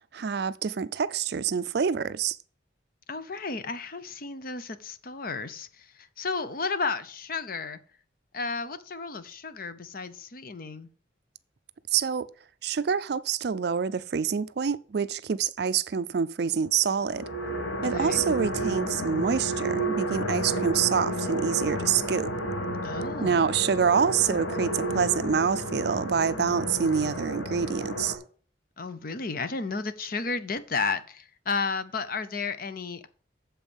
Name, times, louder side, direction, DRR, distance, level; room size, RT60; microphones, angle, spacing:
voice 1, 0.1-2.4 11.9-12.3 12.6-17.2 17.8-22.3 23.2-28.2, right 6 dB, 55° right, 0.4 m, -26 dB
voice 2, 3.1-7.8 8.3-10.9 17.8-18.2 22.8-23.5 28.8-33.1, left 4 dB, 50° left, 0.7 m, -33 dB
sound 1, 16.8-28.2, right 1 dB, 85° left, 1.5 m, -31 dB
7.2 x 5.3 x 7.0 m
head